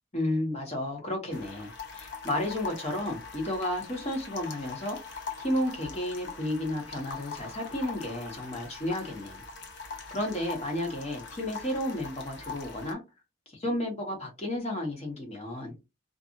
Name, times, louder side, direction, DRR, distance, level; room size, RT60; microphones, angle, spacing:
voice 1, 0.1-5.0 5.4-9.4 10.1-13.0 13.5-15.7, left 1 dB, 30° left, 1 dB, 1.2 m, -32 dB
sound 1, 1.3-12.9, left 4 dB, 55° left, 0.7 m, -42 dB
2.6 x 2.5 x 2.5 m, 0.24 s
head